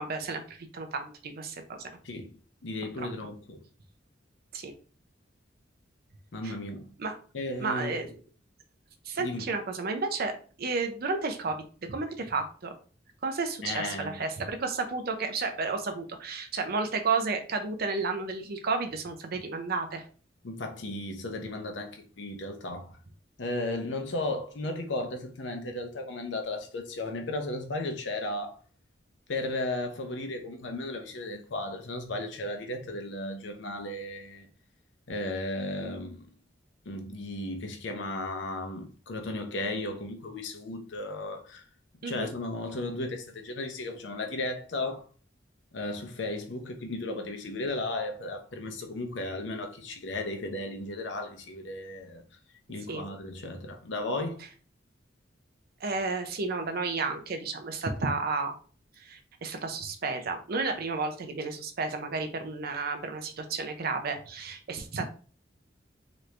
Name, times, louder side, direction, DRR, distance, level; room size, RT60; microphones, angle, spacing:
voice 1, 0.0-1.9 3.0-3.1 4.5-4.7 6.4-6.5 7.0-7.2 7.6-8.1 9.0-11.6 11.8-12.7 13.2-20.0 42.0-42.3 52.9-53.1 55.8-58.6 59.0-65.0, right 4 dB, 55° right, 0.5 m, -32 dB
voice 2, 2.6-3.6 6.3-6.9 7.3-7.9 9.2-9.4 13.6-14.2 20.4-22.9 23.4-28.6 29.3-34.5 35.1-36.3 36.9-41.6 42.1-45.0 45.7-52.2 52.7-54.4, left 2 dB, 70° left, 0.7 m, -35 dB
3.0 x 2.5 x 3.2 m
head